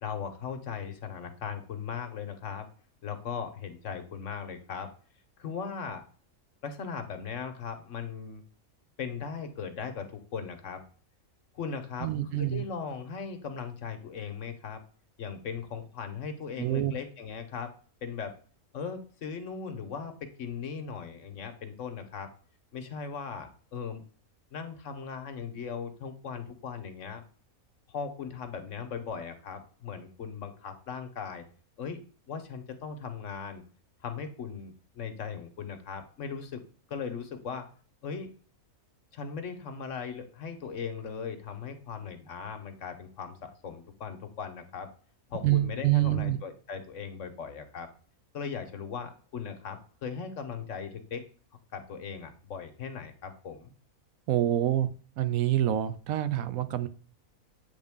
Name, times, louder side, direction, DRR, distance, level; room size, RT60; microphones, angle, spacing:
voice 1, 0.0-2.7 3.0-4.9 5.4-6.0 6.6-8.4 9.0-10.8 11.5-14.8 15.2-17.7 18.0-18.4 18.7-22.3 22.7-24.0 24.5-27.2 27.9-31.4 31.8-32.0 32.3-33.6 34.0-36.6 36.9-37.7 38.0-38.3 39.1-44.9 45.3-47.9 48.3-51.3 51.7-53.7, left 6 dB, 60° left, 8 dB, 1.1 m, -38 dB
voice 2, 12.0-12.6 16.6-16.9 45.4-46.4 54.3-54.9 55.2-56.9, right 13 dB, 75° right, 13 dB, 1.0 m, -26 dB
8.2 x 3.5 x 3.5 m, 0.41 s
omnidirectional pair, 1.5 m